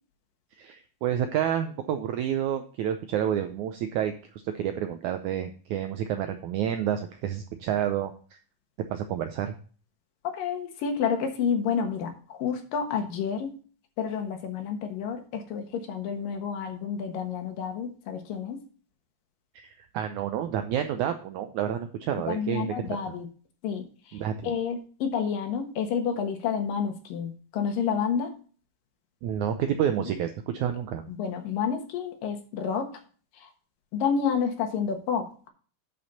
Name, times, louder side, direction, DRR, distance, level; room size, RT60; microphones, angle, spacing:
voice 1, 0.6-4.2 4.4-8.1 8.9-9.5 19.5-22.7 24.1-24.5 29.2-31.0, right 9 dB, 90° right, 7 dB, 1.7 m, -29 dB
voice 2, 10.2-13.6 14.0-18.6 22.3-23.3 23.6-28.3 30.0-30.2 31.1-33.0 33.3-33.5 33.9-35.5, left 7 dB, 70° left, 6 dB, 2.9 m, -30 dB
10.5 x 5.3 x 4.1 m, 0.41 s
omnidirectional pair, 4.2 m